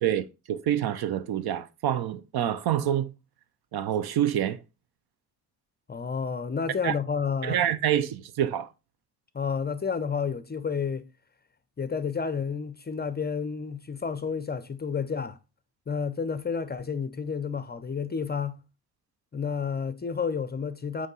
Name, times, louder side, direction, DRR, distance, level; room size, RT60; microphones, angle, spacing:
voice 1, 0.0-3.1 3.7-4.6 6.8-6.9 7.4-8.7, right 10 dB, 50° right, 0.7 m, -27 dB
voice 2, 5.9-7.6 9.3-11.1 11.8-15.4 15.9-18.6 19.3-21.1, left 6 dB, 20° left, 0.6 m, -30 dB
8.8 x 3.3 x 3.9 m
hypercardioid pair, 45°, 50 cm